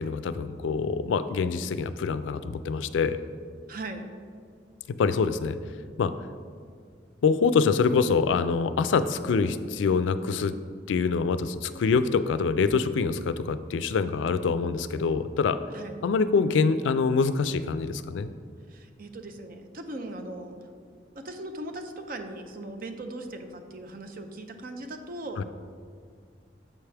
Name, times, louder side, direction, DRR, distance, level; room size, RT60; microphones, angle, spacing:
voice 1, 0.0-3.2 5.0-5.6 6.0-6.1 7.2-10.5 10.9-15.6 16.0-18.3 25.4-25.5, left 5 dB, 80° left, 12 dB, 0.3 m, -25 dB
voice 2, 3.7-4.0 15.7-16.0 18.7-20.6 21.2-25.4, right 2 dB, 50° right, 6 dB, 0.6 m, -39 dB
7.3 x 5.7 x 3.3 m, 2.1 s
head